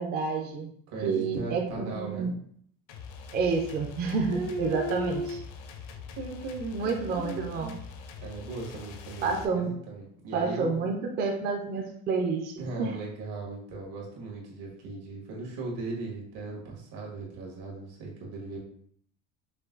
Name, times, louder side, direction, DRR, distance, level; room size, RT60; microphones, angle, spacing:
voice 1, 0.0-0.7 1.0-2.3 3.3-5.2 6.7-7.8 9.2-9.7 10.3-12.9, right 4 dB, 25° right, 2 dB, 0.4 m, -29 dB
voice 2, 0.9-2.3 4.3-5.4 6.1-7.8 8.2-10.8 12.6-18.6, right 2 dB, 80° right, -2 dB, 1.8 m, -37 dB
sound 1, 2.9-9.4, left 5 dB, 60° left, 0.6 m, -44 dB
5.6 x 2.2 x 3.7 m, 0.65 s
cardioid pair, 175°, 37 cm